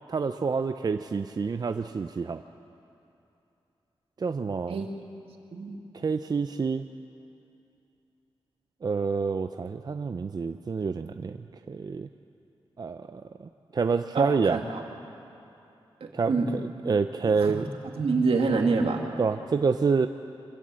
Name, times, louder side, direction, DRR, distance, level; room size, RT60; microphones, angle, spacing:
voice 1, 0.1-2.4 4.2-4.8 5.9-6.8 8.8-11.4 11.7-12.1 12.8-14.6 16.1-17.7 19.2-20.1, right 5 dB, 45° right, 9 dB, 0.5 m, -28 dB
voice 2, 14.1-14.8 16.0-16.5 17.2-17.6 18.0-19.0, right 4 dB, 80° right, 2 dB, 2.2 m, -26 dB
24.5 x 16.5 x 7.7 m, 2.8 s
wide cardioid pair, 130°, 10 cm